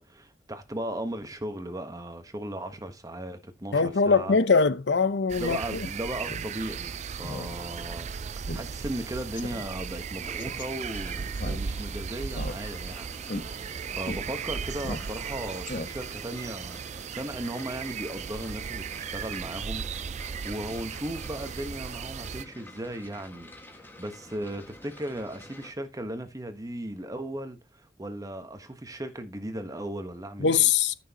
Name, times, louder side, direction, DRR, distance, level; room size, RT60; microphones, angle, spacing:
voice 1, 0.0-4.4 5.4-8.1 8.5-19.8 20.1-30.7, right 1 dB, 20° right, 1.3 m, -37 dB
voice 2, 3.7-5.6 30.4-30.9, left 5 dB, 80° left, 0.7 m, -22 dB
sound 1, 5.3-22.4, right 6 dB, 40° right, 0.4 m, -36 dB
Speech synthesizer, 6.2-6.5 6.8-6.9 7.2-7.5 7.9-8.0 8.5-8.6 8.9-9.0 9.4-9.6 10.4-10.6 11.3-11.9 12.3-12.9 13.2-13.4 14.0-14.2 14.8-15.3 15.6-16.2, left 2 dB, 50° left, 1.2 m, -37 dB
sound 2, 10.2-25.7, left 1 dB, 10° left, 1.8 m, -50 dB
13.5 x 6.3 x 3.0 m
head